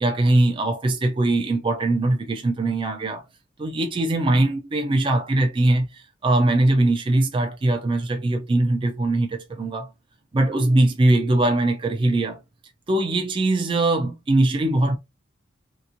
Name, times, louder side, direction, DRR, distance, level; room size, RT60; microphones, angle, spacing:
voice 1, 0.0-3.2 3.6-9.9 10.3-12.4 12.9-15.0, right 2 dB, 25° right, 0.3 m, -21 dB
3.3 x 2.9 x 2.5 m
head